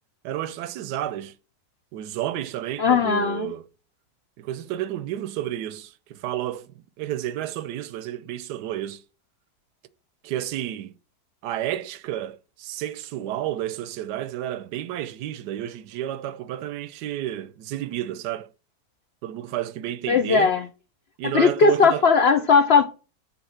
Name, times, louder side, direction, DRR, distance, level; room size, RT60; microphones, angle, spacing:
voice 1, 0.2-1.3 1.9-3.6 4.4-9.0 10.2-10.9 11.4-18.5 19.2-20.6 21.2-22.1, right 12 dB, 75° right, 1.1 m, -31 dB
voice 2, 2.8-3.5 20.1-20.6 21.3-22.8, left 5 dB, 80° left, 0.5 m, -18 dB
7.1 x 3.5 x 5.6 m
omnidirectional pair, 1.8 m